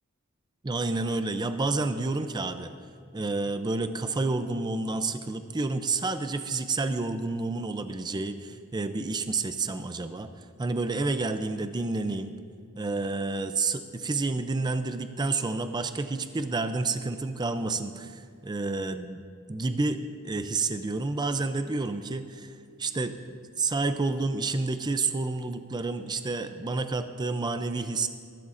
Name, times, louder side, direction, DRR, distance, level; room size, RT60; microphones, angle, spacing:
voice 1, 0.6-2.7 3.1-12.4 12.8-19.2 19.5-22.5 22.8-23.1 23.6-28.1, right 3 dB, 20° right, 9 dB, 0.4 m, -29 dB
21.0 x 12.0 x 2.5 m, 2.3 s
head